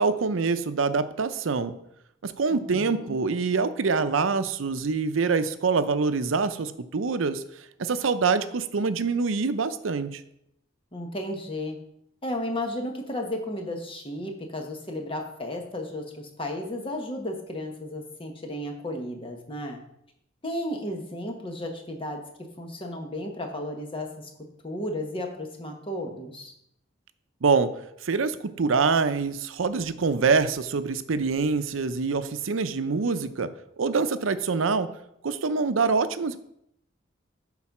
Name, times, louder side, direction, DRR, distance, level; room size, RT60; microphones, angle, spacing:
voice 1, 0.0-1.7 2.2-7.4 7.8-10.2 27.4-27.7 28.0-33.5 33.8-34.9 35.2-36.4, right 4 dB, 85° right, 11 dB, 0.6 m, -25 dB
voice 2, 2.5-3.2 10.9-11.8 12.2-19.8 20.4-22.2 22.6-24.3 24.6-26.5, left 1 dB, 30° left, 3 dB, 1.2 m, -34 dB
8.6 x 4.0 x 5.9 m, 0.77 s
head